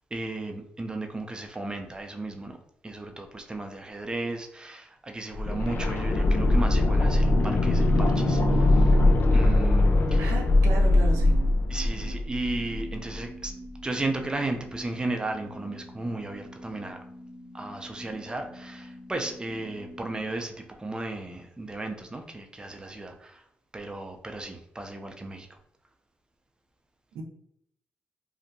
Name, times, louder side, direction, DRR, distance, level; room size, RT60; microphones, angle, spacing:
voice 1, 0.1-2.6 2.8-8.9 9.3-10.3 11.7-13.5 13.8-17.0 17.5-23.4 23.7-25.6, right 2 dB, 20° right, 4 dB, 0.4 m, -35 dB
sound 1, 5.3-13.1 13.4-13.5, left 2 dB, 50° left, 0.3 m, -21 dB
sound 2, 8.9-21.1, right 1 dB, 30° left, 1.0 m, -45 dB
voice 2, 10.2-11.3 27.1-27.2, right 3 dB, 90° right, 1 dB, 0.4 m, -34 dB
2.6 x 2.1 x 2.6 m, 0.73 s
supercardioid pair, 55°, 5 cm